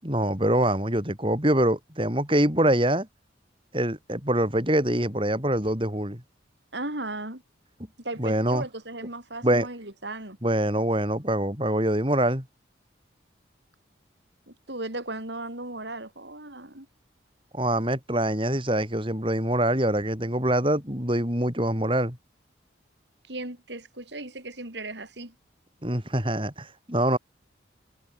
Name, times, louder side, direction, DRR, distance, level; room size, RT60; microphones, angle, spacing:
voice 1, 0.0-3.1 3.7-6.2 8.2-8.6 9.4-9.7 10.4-12.4 17.5-22.2 25.8-27.2, right 1 dB, 30° right, 6.7 m, -24 dB
voice 2, 6.7-7.4 8.0-10.4 14.5-16.9 23.3-25.3, right 2 dB, 70° right, 7.5 m, -36 dB
head